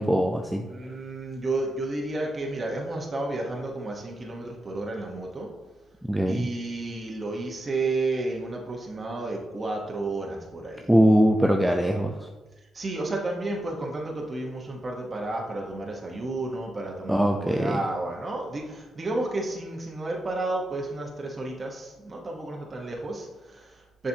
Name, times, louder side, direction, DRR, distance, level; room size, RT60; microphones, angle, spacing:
voice 1, 0.0-0.6 6.1-6.5 10.9-12.3 17.1-17.8, equal, 5° right, 2 dB, 0.5 m, -22 dB
voice 2, 0.7-5.5 6.3-10.9 12.7-24.1, right 2 dB, 35° right, -1 dB, 1.1 m, -32 dB
7.0 x 5.0 x 2.8 m, 1.2 s
supercardioid pair, 70°, 0 cm